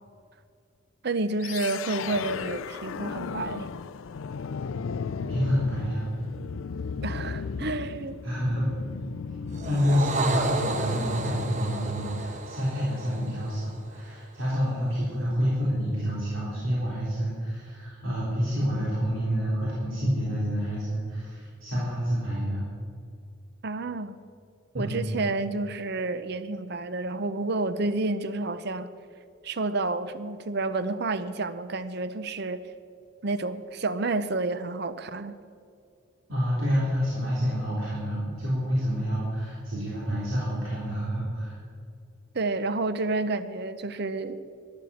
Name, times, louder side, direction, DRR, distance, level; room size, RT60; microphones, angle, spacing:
voice 1, 1.0-3.7 7.0-8.2 23.6-24.2 24.7-28.9 29.4-32.6 33.2-35.3 42.3-44.4, right 3 dB, 55° right, 12 dB, 0.7 m, -30 dB
sound 1, 1.4-12.5, left 5 dB, 85° left, 0.4 m, -36 dB
voice 2, 5.3-6.1 8.2-8.7 9.7-22.6 24.7-25.0 36.3-41.6, equal, 90° right, -7 dB, 3.9 m, -28 dB
sound 2, 9.5-14.1, right 2 dB, 40° right, 1.0 m, -32 dB
12.5 x 12.0 x 7.1 m, 2.4 s
head